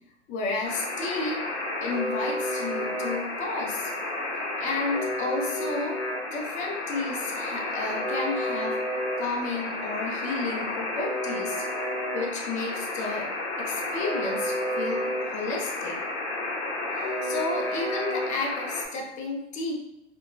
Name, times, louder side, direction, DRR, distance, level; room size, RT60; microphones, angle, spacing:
voice 1, 0.3-1.4 1.8-3.9 4.6-6.0 6.3-8.8 9.2-11.6 12.1-13.3 13.6-16.0 16.9-19.7, left 3 dB, 20° left, 1 dB, 0.4 m, -32 dB
Alarm, 0.6-18.8, left 1 dB, 75° left, 0.7 m, -31 dB
2.6 x 2.1 x 2.5 m, 0.84 s
hypercardioid pair, 100°, 34 cm